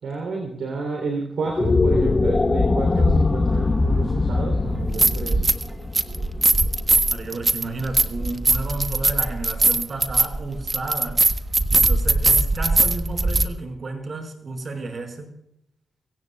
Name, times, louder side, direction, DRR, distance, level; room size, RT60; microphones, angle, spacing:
voice 1, 0.0-5.5, right 3 dB, 75° right, 1 dB, 3.3 m, -30 dB
sound 1, 1.4-7.8, left 3 dB, 35° left, 1.0 m, -22 dB
sound 2, 3.0-3.2 4.7-5.7 5.9-13.5, right 2 dB, 30° right, 1.2 m, -20 dB
voice 2, 7.1-11.2 11.7-15.3, right 3 dB, 55° right, 4 dB, 5.3 m, -32 dB
24.0 x 17.0 x 2.4 m, 0.77 s
supercardioid pair, 50°, 0 cm